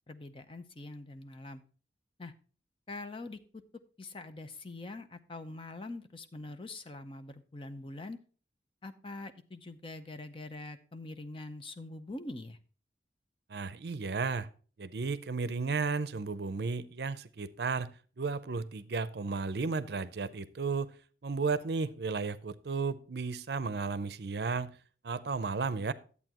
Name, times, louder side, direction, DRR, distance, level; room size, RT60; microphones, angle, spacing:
voice 1, 0.1-1.6 2.2-2.3 2.9-3.4 4.0-8.2 8.8-12.6, left 2 dB, 30° left, 0.6 m, -44 dB
voice 2, 13.5-14.5 14.8-17.9 18.2-20.9 21.2-24.7 25.0-25.9, right 4 dB, 65° right, 0.5 m, -33 dB
11.0 x 8.2 x 2.9 m
head